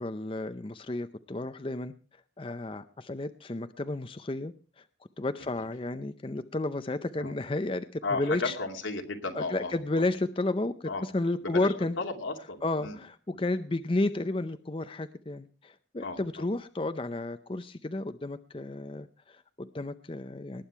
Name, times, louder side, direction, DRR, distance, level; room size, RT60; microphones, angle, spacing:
voice 1, 0.0-1.9 2.4-4.8 5.2-8.5 9.3-12.0 12.6-20.6, left 2 dB, 25° left, 11 dB, 0.5 m, -32 dB
voice 2, 8.0-10.1 10.8-11.0 11.4-13.0 13.3-13.4 13.7-13.8 16.0-16.5, left 3 dB, 85° left, 3 dB, 2.5 m, -35 dB
19.5 x 8.7 x 4.6 m, 0.36 s
head